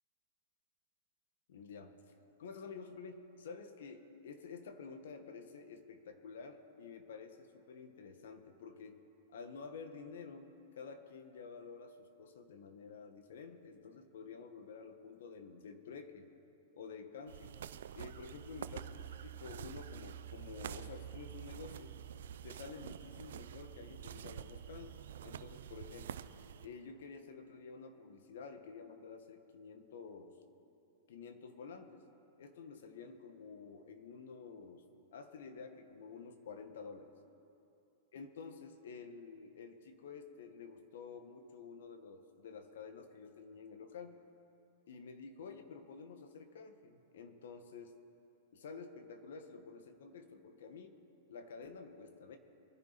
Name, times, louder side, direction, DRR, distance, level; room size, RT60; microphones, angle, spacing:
voice 1, 1.5-2.0 2.4-9.0 9.3-16.3 16.7-17.5 17.9-22.0 22.4-26.2 26.6-30.4 31.1-32.0 32.4-37.1 38.1-44.2 44.9-48.0 48.5-51.0 51.3-52.4, left 5 dB, 75° left, 7 dB, 1.6 m, -50 dB
sound 1, 17.3-26.7, right 9 dB, 75° right, 0.5 m, -47 dB
23.5 x 10.5 x 4.2 m, 2.7 s
hypercardioid pair, 130°, 0 cm